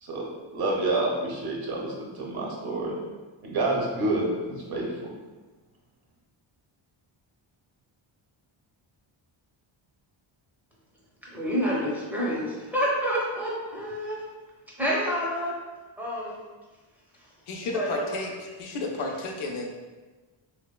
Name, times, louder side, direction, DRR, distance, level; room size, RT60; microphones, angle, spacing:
voice 1, 0.0-3.0 3.4-5.1, right 2 dB, 50° right, -2 dB, 0.6 m, -28 dB
voice 2, 11.2-14.2 14.8-15.5 16.0-16.4 17.7-18.1, equal, 5° right, -6 dB, 0.5 m, -28 dB
voice 3, 17.5-19.7, left 2 dB, 80° left, 1 dB, 0.5 m, -32 dB
3.0 x 2.0 x 2.2 m, 1.3 s
wide cardioid pair, 130°, 50 cm